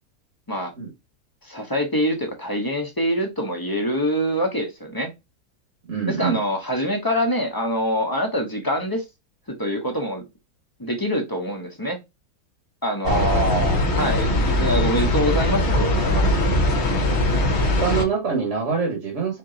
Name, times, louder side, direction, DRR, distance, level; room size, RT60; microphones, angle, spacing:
voice 1, 1.4-5.1 6.1-9.0 9.6-10.2 10.8-12.0 12.8-13.5 14.0-16.4, equal, 20° left, 0.7 m, -25 dB
voice 2, 5.8-6.4 13.0-13.9 17.8-19.4, right 5 dB, 50° right, 1.4 m, -24 dB
sound 1, 13.1-18.1, left 1 dB, 50° left, 1.1 m, -21 dB
4.5 x 3.0 x 3.8 m
omnidirectional pair, 1.7 m